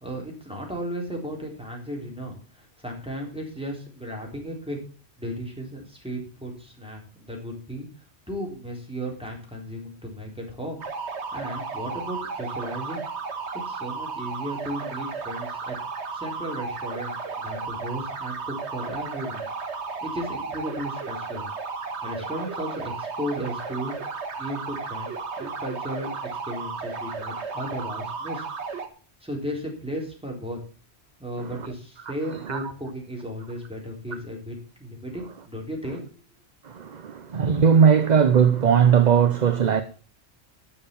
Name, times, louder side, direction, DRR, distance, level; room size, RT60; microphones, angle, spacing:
voice 1, 0.0-4.8 5.2-7.9 8.3-10.8 11.1-13.0 13.7-15.8 16.1-19.4 20.0-21.5 22.0-24.0 24.4-26.1 26.5-28.5 29.2-30.6 31.2-36.2, equal, 5° right, 4.0 m, -35 dB
sound 1, 10.8-28.9, right 4 dB, 80° right, 1.7 m, -34 dB
voice 2, 36.6-39.8, right 7 dB, 45° right, 0.8 m, -19 dB
12.5 x 6.9 x 7.0 m
omnidirectional pair, 1.1 m